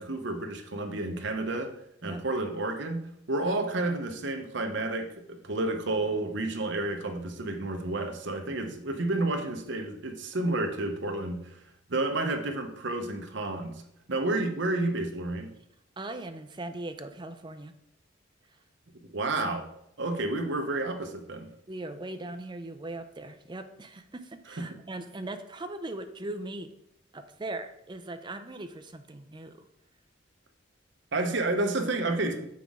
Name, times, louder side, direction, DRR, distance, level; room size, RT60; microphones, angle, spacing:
voice 1, 0.0-1.7 2.0-11.6 11.9-13.8 14.1-15.5 19.1-19.7 20.0-21.5 24.6-24.7 31.1-32.5, right 2 dB, 65° right, 4 dB, 0.9 m, -30 dB
voice 2, 16.0-17.7 18.5-18.6 19.4-19.6 21.7-26.7 27.1-29.7, right 2 dB, 25° right, 8 dB, 0.5 m, -39 dB
7.1 x 5.8 x 3.7 m, 0.75 s
head